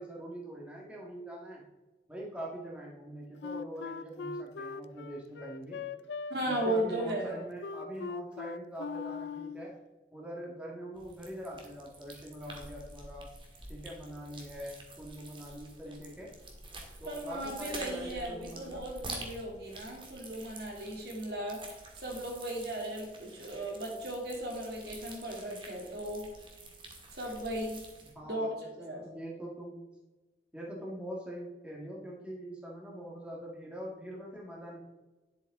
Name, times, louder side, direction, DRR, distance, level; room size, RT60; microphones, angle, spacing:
voice 1, 0.0-1.7 2.1-5.8 6.5-9.7 10.1-13.3 13.7-16.3 17.0-18.8 28.0-29.8 30.5-34.8, equal, 5° right, -3 dB, 1.6 m, -43 dB
Wind instrument woodwind instrument, 3.4-9.7, left 5 dB, 70° left, 0.4 m, -40 dB
voice 2, 6.3-7.3 17.1-21.6 22.0-26.3 27.1-27.8 28.2-28.5 28.8-29.1, right 1 dB, 60° right, -1 dB, 2.6 m, -36 dB
sound 1, 10.9-28.1, right 2 dB, 25° right, 1.7 m, -48 dB
10.5 x 7.8 x 3.6 m, 1.2 s
head